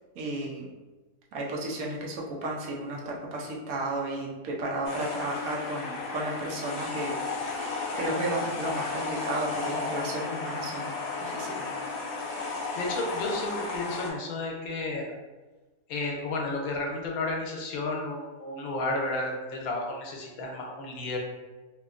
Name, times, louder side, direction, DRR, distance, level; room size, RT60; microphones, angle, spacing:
voice 1, 0.2-0.7 1.3-11.7, right 1 dB, 80° right, -2 dB, 1.1 m, -33 dB
sound 1, 4.8-14.1, left 3 dB, 65° left, 0.7 m, -34 dB
voice 2, 12.8-15.1 15.9-21.2, left 2 dB, 80° left, 1 dB, 1.1 m, -32 dB
2.8 x 2.8 x 2.4 m, 1.2 s
omnidirectional pair, 1.5 m